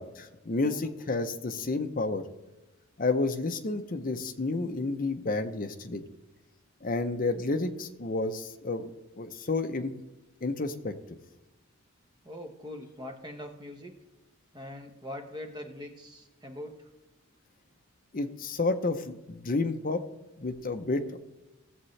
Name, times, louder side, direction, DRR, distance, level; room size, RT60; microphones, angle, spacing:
voice 1, 0.0-2.2 3.0-6.0 6.8-8.9 9.2-9.9 10.4-11.0 18.1-20.0 20.4-21.2, left 3 dB, 40° left, 7 dB, 0.7 m, -30 dB
voice 2, 0.6-1.1 12.2-13.9 14.5-16.9 20.3-20.4, left 1 dB, 20° right, 4 dB, 1.0 m, -43 dB
17.0 x 7.3 x 3.2 m, 1.1 s
head